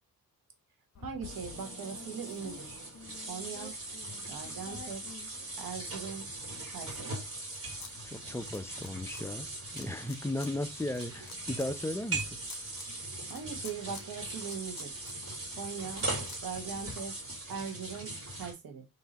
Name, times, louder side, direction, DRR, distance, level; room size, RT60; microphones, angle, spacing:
sound 1, 0.9-6.0 6.5-7.9 8.2-9.2 9.8-10.5 10.8-16.9, left 5 dB, 50° left, 1.2 m, -50 dB
voice 1, 1.0-2.8 3.3-3.7 4.3-5.0 5.6-6.3 6.7-7.2 13.3-15.0 15.6-16.1 16.4-17.2 17.5-18.9, right 6 dB, 75° right, 1.1 m, -40 dB
sound 2, 1.2-18.5, right 2 dB, 40° right, 1.8 m, -40 dB
voice 2, 8.0-9.5 9.7-12.4, left 1 dB, 5° left, 0.5 m, -36 dB
3.8 x 2.8 x 4.1 m
cardioid pair, 80°, 36 cm